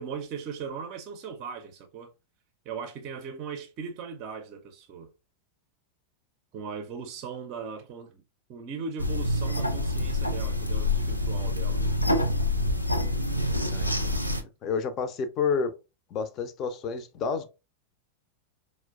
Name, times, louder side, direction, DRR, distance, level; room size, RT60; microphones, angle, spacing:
voice 1, 0.0-2.1 2.6-5.1 6.5-8.2 8.5-11.8, right 6 dB, 40° right, 0.5 m, -38 dB
sound 1, 9.0-14.4, left 1 dB, 90° left, 0.4 m, -26 dB
voice 2, 13.6-14.2 14.6-15.7 16.1-17.5, left 5 dB, 35° left, 0.5 m, -30 dB
4.3 x 2.1 x 2.3 m
figure-of-eight pair, 90°, 0 cm